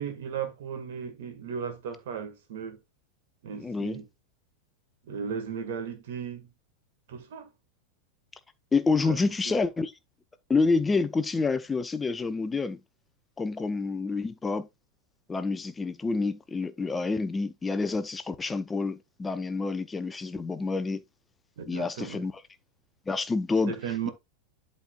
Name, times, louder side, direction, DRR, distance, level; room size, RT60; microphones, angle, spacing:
voice 1, 0.0-2.8 3.4-4.1 5.0-6.5 7.1-7.5 9.0-9.2 9.5-9.6 21.6-22.3 23.7-24.1, right 7 dB, 55° right, 1.8 m, -36 dB
voice 2, 3.5-4.0 8.7-9.9 10.5-12.8 13.4-14.7 15.3-21.0 21.7-22.3 23.1-23.8, left 4 dB, 15° left, 0.6 m, -28 dB
11.5 x 4.2 x 2.4 m
figure-of-eight pair, 90°, 0 cm